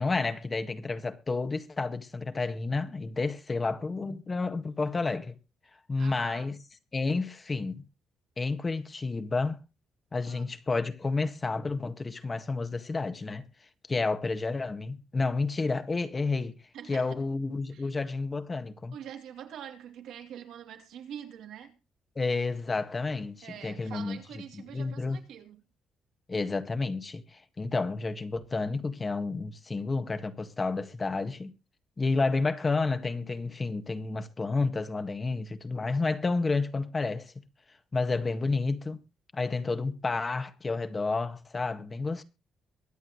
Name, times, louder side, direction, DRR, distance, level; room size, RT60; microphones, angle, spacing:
voice 1, 0.0-5.4 5.9-6.6 6.9-7.8 8.4-9.6 10.1-13.4 13.9-16.6 16.9-19.0 22.2-24.2 24.5-25.2 26.3-31.5 32.0-37.3 37.9-39.0 39.3-42.2, left 3 dB, 30° left, 1.8 m, -30 dB
voice 2, 6.0-6.5 10.3-10.5 16.7-17.1 17.7-17.9 18.9-21.8 23.4-25.6, right 9 dB, 80° right, 2.9 m, -45 dB
23.0 x 8.4 x 3.1 m
cardioid pair, 90°, 0 cm